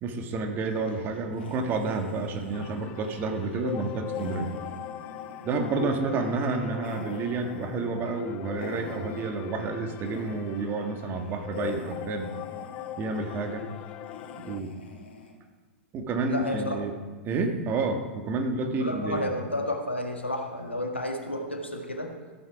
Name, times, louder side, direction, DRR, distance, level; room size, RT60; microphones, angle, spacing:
voice 1, 0.0-4.5 5.4-12.3 13.0-13.6 14.3-14.7 15.9-16.9 17.2-19.3, right 3 dB, 35° right, 4 dB, 1.7 m, -30 dB
sound 1, 0.6-9.7 10.0-10.8 11.1-15.3, left 3 dB, 65° left, 2.2 m, -46 dB
sound 2, 2.5-14.6, left 13 dB, 35° left, 0.4 m, -40 dB
voice 2, 16.3-16.8 18.7-22.1, left 1 dB, 90° left, 3 dB, 1.6 m, -31 dB
14.5 x 8.7 x 4.9 m, 1.4 s
figure-of-eight pair, 95°, 6 cm